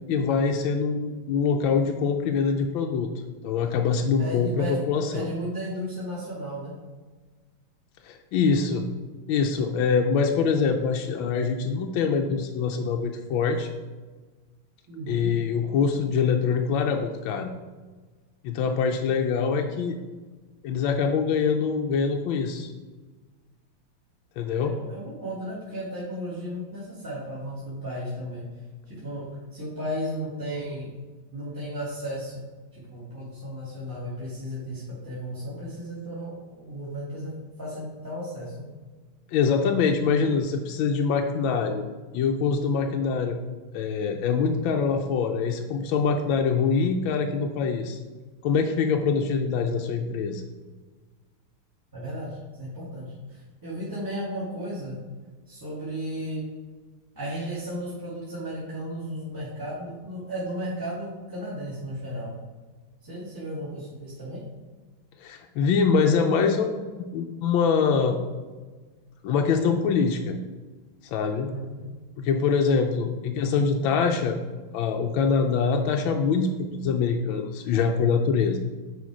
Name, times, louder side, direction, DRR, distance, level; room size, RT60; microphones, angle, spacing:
voice 1, 0.1-3.1 3.4-5.3 8.0-8.9 9.3-13.7 15.1-17.5 18.4-20.0 20.6-22.7 24.4-24.8 39.3-41.8 42.1-43.4 43.7-48.0 48.4-50.4 65.2-68.2 69.2-70.4 71.0-71.5 72.2-74.4 74.7-78.6, left 5 dB, 75° left, 3 dB, 1.4 m, -24 dB
voice 2, 4.2-4.7 5.1-6.7 14.9-15.3 24.6-28.5 28.9-30.9 31.3-32.3 32.7-36.3 36.6-37.3 37.6-38.6 51.9-55.0 55.5-56.4 57.2-62.3 63.0-64.4 71.4-71.8, equal, 10° right, -9 dB, 1.8 m, -34 dB
9.4 x 3.8 x 4.8 m, 1.3 s
omnidirectional pair, 2.2 m